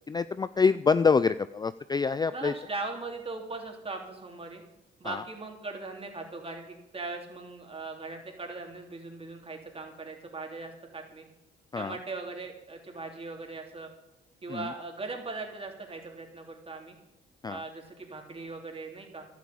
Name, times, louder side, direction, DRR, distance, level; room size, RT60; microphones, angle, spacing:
voice 1, 0.0-2.5 5.1-5.2 11.7-12.0 14.5-14.7 17.4-17.6, left 5 dB, 20° left, 14 dB, 0.4 m, -26 dB
voice 2, 2.3-4.6 5.0-11.2 11.7-13.9 14.4-16.9 17.4-19.3, right 3 dB, 30° right, 2 dB, 3.3 m, -39 dB
11.5 x 8.5 x 8.7 m, 0.93 s
cardioid pair, 90°, 20 cm